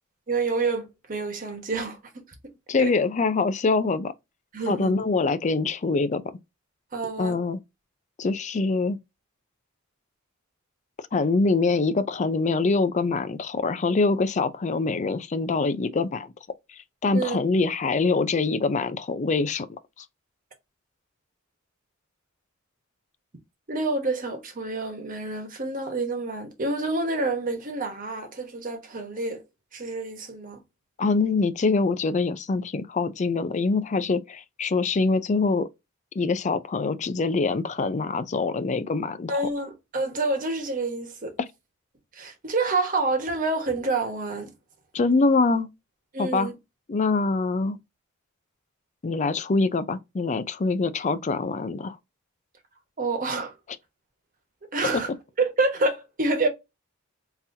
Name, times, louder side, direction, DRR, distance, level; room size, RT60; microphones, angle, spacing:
voice 1, 0.3-2.2 2.8-2.9 4.5-4.9 6.9-7.4 17.1-17.4 23.7-29.4 29.7-30.6 39.3-41.4 42.1-44.5 46.1-46.6 53.0-53.6 54.7-55.1 55.4-56.5, right 3 dB, 40° right, 1.1 m, -28 dB
voice 2, 2.7-4.1 4.7-6.2 7.2-7.6 8.2-9.0 11.1-16.3 16.7-19.7 31.0-35.7 36.2-39.3 44.9-45.7 46.2-46.5 46.9-47.8 49.0-52.0, left 3 dB, 35° left, 0.4 m, -24 dB
3.9 x 2.8 x 2.7 m
head